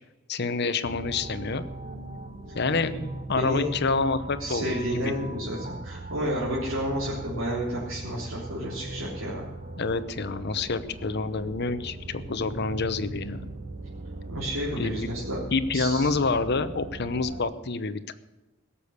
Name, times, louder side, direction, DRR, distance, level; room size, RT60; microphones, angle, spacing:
voice 1, 0.3-1.6 2.5-2.9 3.3-5.1 9.8-13.5 14.8-15.1 15.5-18.2, left 4 dB, 55° left, 12 dB, 0.8 m, -28 dB
sound 1, 0.8-17.4, right 2 dB, 35° right, 1.4 m, -39 dB
voice 2, 3.3-3.7 4.4-9.5 14.3-15.4 15.7-16.2, equal, 80° right, -7 dB, 3.7 m, -31 dB
17.0 x 7.1 x 8.2 m, 1.1 s
head